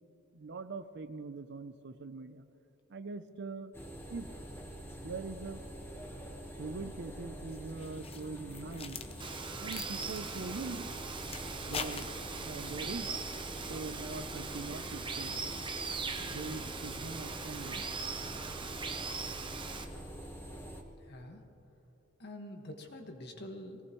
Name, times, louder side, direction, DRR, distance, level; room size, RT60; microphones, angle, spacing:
voice 1, 0.3-2.5 2.9-3.7 4.1-4.3 5.0-5.6 6.6-9.0 9.6-10.9 11.6-13.1 13.7-15.4 16.2-17.8, right 3 dB, 55° right, 12 dB, 0.6 m, -42 dB
sound 1, 3.7-20.8, equal, 10° left, 1.3 m, -45 dB
sound 2, 7.5-12.6, left 5 dB, 30° left, 0.7 m, -45 dB
Water, 9.2-19.8, right 4 dB, 25° right, 0.8 m, -40 dB
voice 2, 21.0-21.4 22.2-23.8, left 1 dB, 55° left, 3 dB, 1.7 m, -46 dB
23.0 x 17.5 x 3.1 m, 2.9 s
head